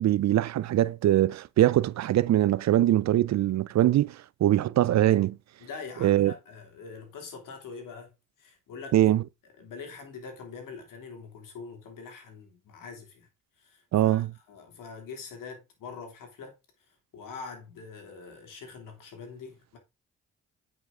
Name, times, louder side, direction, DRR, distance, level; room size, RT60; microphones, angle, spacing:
voice 1, 0.0-5.4 6.0-6.3 8.9-9.2 13.9-14.3, right 13 dB, 55° right, 0.5 m, -22 dB
voice 2, 5.6-9.0 9.6-13.3 13.6-16.5 17.1-19.8, left 5 dB, 70° left, 3.0 m, -44 dB
9.2 x 5.8 x 3.7 m
hypercardioid pair, 50°, 33 cm